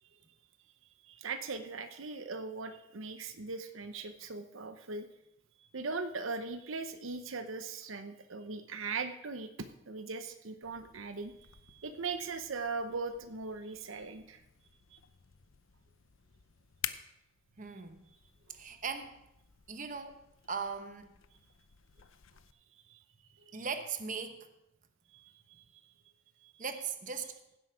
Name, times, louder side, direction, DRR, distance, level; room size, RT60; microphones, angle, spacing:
voice 1, 1.0-5.1 5.6-11.3 11.7-14.4 14.9-15.0 22.9-23.0 23.4-23.5 25.1-25.8 26.4-26.5, right 4 dB, 75° right, 8 dB, 0.9 m, -40 dB
sound 1, 10.6-22.5, left 11 dB, 75° left, 0.6 m, -50 dB
voice 2, 17.6-18.0 18.5-19.2 19.7-20.2 20.5-21.1 23.5-24.5 26.6-27.3, right 5 dB, 40° right, 8 dB, 0.9 m, -39 dB
16.5 x 7.8 x 5.0 m, 0.86 s
head